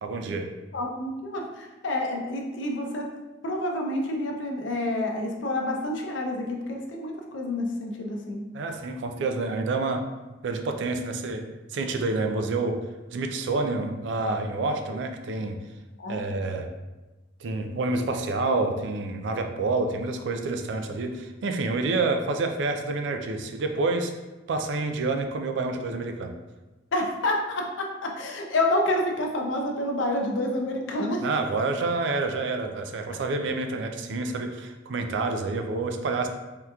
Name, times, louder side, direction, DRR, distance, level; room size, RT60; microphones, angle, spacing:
voice 1, 0.0-0.5 8.5-10.0 10.4-11.4 11.7-12.8 13.1-15.6 16.1-16.7 17.4-24.1 24.5-26.3 31.2-36.3, right 3 dB, 65° right, 5 dB, 0.3 m, -28 dB
voice 2, 0.7-3.1 3.4-8.4 16.0-16.4 26.9-31.3, left 1 dB, 70° left, 1 dB, 0.5 m, -28 dB
3.5 x 2.8 x 2.3 m, 1.1 s
head